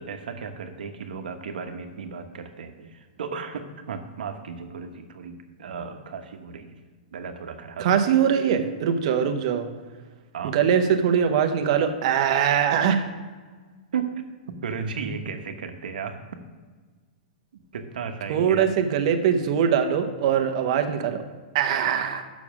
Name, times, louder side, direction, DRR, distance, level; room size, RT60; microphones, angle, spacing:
voice 1, 0.0-6.7 7.1-7.9 10.3-10.6 13.9-14.2 14.6-16.2 17.7-18.7, right 6 dB, 75° right, 6 dB, 1.0 m, -34 dB
voice 2, 7.8-9.7 10.5-13.1 18.3-21.2 21.5-22.2, right 8 dB, 45° right, 7 dB, 0.8 m, -22 dB
7.0 x 6.1 x 6.1 m, 1.5 s
hypercardioid pair, 165°, 5 cm